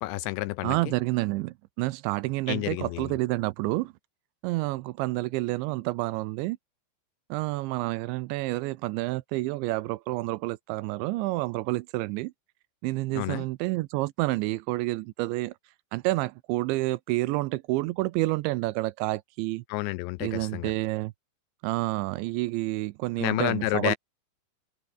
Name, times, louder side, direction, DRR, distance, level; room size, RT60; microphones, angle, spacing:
voice 1, 0.0-0.8 2.5-3.1 13.2-13.5 19.7-20.7 23.2-24.0, left 19 dB, 85° left, 2.6 m, -29 dB
voice 2, 0.6-3.9 4.4-6.6 7.3-12.3 12.8-15.5 15.9-19.6 20.2-21.1 21.6-24.0, right 20 dB, 85° right, 2.9 m, -29 dB
omnidirectional pair, 5.5 m